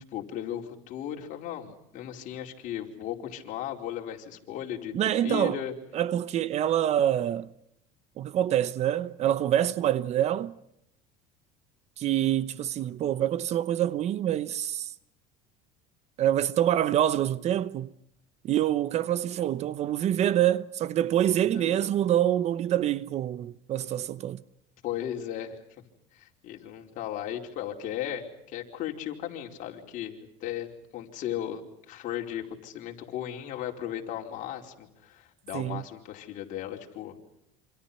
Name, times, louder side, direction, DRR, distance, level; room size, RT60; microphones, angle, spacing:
voice 1, 0.1-4.9 5.2-5.7 21.2-21.9 24.8-25.6 26.1-37.1, left 11 dB, 55° left, 4.7 m, -36 dB
voice 2, 4.9-5.6 5.9-7.5 8.2-10.6 12.0-14.9 16.2-17.9 18.4-24.4 35.5-35.8, right 11 dB, 40° right, 0.9 m, -26 dB
28.0 x 27.0 x 5.6 m
cardioid pair, 135°, 16 cm